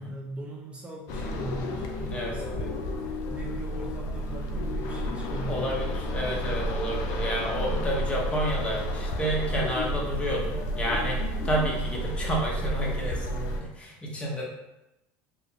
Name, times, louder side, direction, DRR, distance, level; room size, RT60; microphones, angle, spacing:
voice 1, 0.0-2.9 3.3-5.7, right 1 dB, 20° right, -2 dB, 0.4 m, -40 dB
sound 1, 1.1-13.6, equal, 60° left, 0.4 m, -31 dB
voice 2, 5.5-14.4, equal, 20° left, -3 dB, 0.7 m, -30 dB
2.3 x 2.0 x 3.1 m, 0.92 s
supercardioid pair, 105°, 6 cm